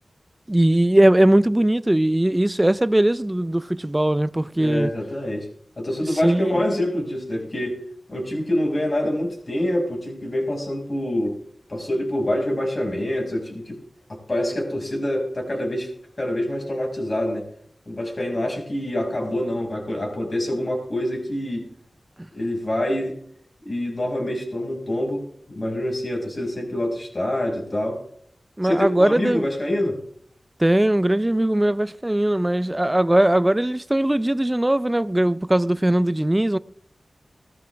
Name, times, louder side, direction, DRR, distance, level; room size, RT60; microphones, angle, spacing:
voice 1, 0.5-4.9 6.2-6.6 28.6-29.5 30.6-36.6, right 1 dB, 20° right, 0.6 m, -20 dB
voice 2, 4.5-5.5 5.8-7.8 8.1-11.4 11.7-13.8 14.1-15.9 16.2-17.5 17.9-21.7 22.3-23.2 23.6-28.0 28.6-30.0, left 1 dB, 50° left, 6.0 m, -26 dB
18.0 x 13.5 x 3.5 m
cardioid pair, 40°, 0 cm